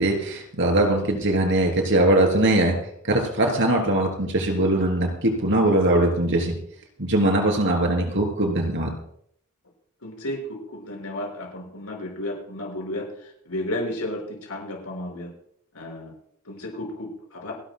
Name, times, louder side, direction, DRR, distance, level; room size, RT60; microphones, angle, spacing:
voice 1, 0.0-2.8 3.1-6.5 7.0-8.9, right 1 dB, 60° right, 3 dB, 3.3 m, -21 dB
voice 2, 10.0-15.3 15.7-16.1 16.5-17.5, left 1 dB, 90° left, 0 dB, 5.6 m, -33 dB
29.5 x 11.5 x 2.2 m, 0.68 s
head